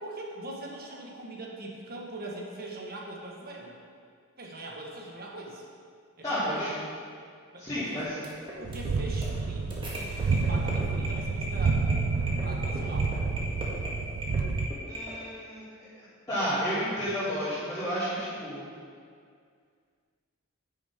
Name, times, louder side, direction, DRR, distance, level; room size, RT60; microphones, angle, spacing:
voice 1, 0.0-3.8 4.4-5.6 6.2-6.8 7.5-8.0 8.6-13.2, right 2 dB, 45° right, -1 dB, 1.5 m, -41 dB
voice 2, 6.2-6.7 7.6-8.1 14.9-15.6 16.3-18.6, equal, 15° left, -15 dB, 2.9 m, -31 dB
sound 1, 8.0-15.1, equal, 25° right, 1.8 m, -39 dB
sound 2, 8.6-14.7, right 4 dB, 80° right, 0.4 m, -29 dB
10.5 x 9.5 x 3.7 m, 2.2 s
head